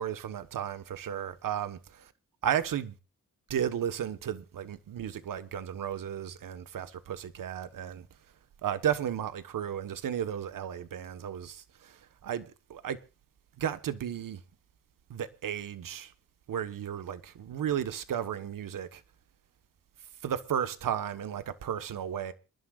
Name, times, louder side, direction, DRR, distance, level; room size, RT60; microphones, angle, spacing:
voice 1, 0.0-2.1 2.4-2.9 3.5-8.1 8.6-13.0 13.6-14.4 15.1-16.1 16.5-19.0 20.2-22.3, right 9 dB, 90° right, 1.3 m, -34 dB
27.5 x 11.5 x 2.4 m
cardioid pair, 75°, 32 cm